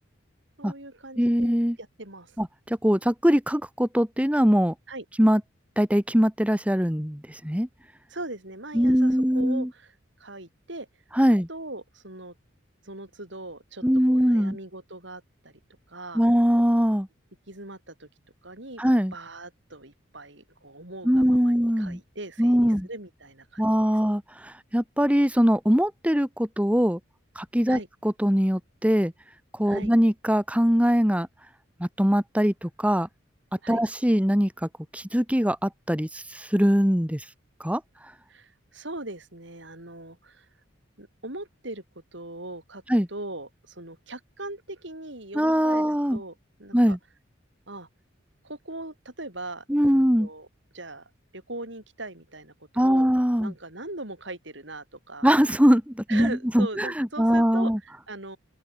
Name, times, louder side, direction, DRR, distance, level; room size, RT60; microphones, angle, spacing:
voice 1, 0.6-1.5 1.8-2.4 4.9-5.0 8.1-9.9 10.2-10.9 11.5-12.3 12.8-13.8 14.1-15.5 15.9-16.2 17.5-18.1 18.4-18.8 19.1-23.7 27.7-27.9 29.7-29.9 33.6-33.8 38.3-40.5 41.0-41.8 42.1-42.8 43.1-46.3 46.6-47.0 47.7-47.9 48.4-50.5 50.7-53.1 53.4-55.3 56.1-58.4, right 2 dB, 60° right, 6.0 m, -40 dB
voice 2, 1.2-1.8 2.4-4.7 5.2-5.4 5.8-7.7 8.7-9.7 11.2-11.5 13.8-14.6 16.1-17.1 18.8-19.1 21.0-22.0 22.4-22.9 23.6-27.0 27.4-29.1 29.6-31.3 31.8-33.1 33.7-37.2 37.6-37.8 42.9-43.1 45.3-46.2 46.7-47.0 49.7-50.3 52.8-53.5 55.2-57.8, equal, 5° right, 2.1 m, -22 dB
open air
head